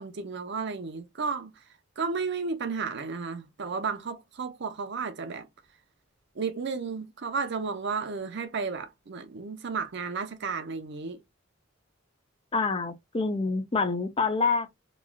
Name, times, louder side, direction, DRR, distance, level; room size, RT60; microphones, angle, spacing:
voice 1, 0.0-1.5 2.0-5.5 6.4-11.2, right 5 dB, 60° right, 0.6 m, -33 dB
voice 2, 12.5-14.7, left 4 dB, 30° left, 0.5 m, -27 dB
3.1 x 2.3 x 2.3 m
head